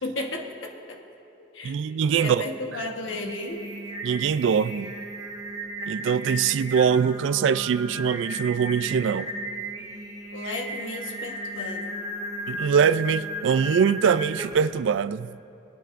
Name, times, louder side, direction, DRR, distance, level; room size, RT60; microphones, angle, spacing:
voice 1, 0.0-1.0 1.4-3.6 10.3-12.0, left 2 dB, 90° left, 1.3 m, -34 dB
voice 2, 1.6-2.4 4.0-5.0 5.9-9.3 12.5-15.3, right 7 dB, 75° right, 0.3 m, -23 dB
Singing, 3.1-14.8, right 1 dB, 20° right, 1.0 m, -35 dB
24.0 x 9.2 x 2.6 m
head